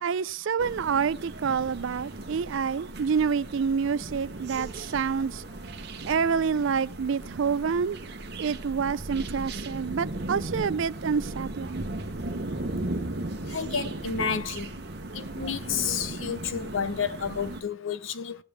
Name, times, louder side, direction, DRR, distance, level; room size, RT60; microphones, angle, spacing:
voice 1, 0.0-5.4 6.1-8.0 8.4-11.8, right 6 dB, 65° right, 0.4 m, -27 dB
sound 1, 0.6-17.6, right 2 dB, 50° right, 0.9 m, -37 dB
voice 2, 13.5-14.7 15.1-18.4, left 6 dB, 70° left, 0.7 m, -30 dB
16.5 x 7.1 x 3.4 m
head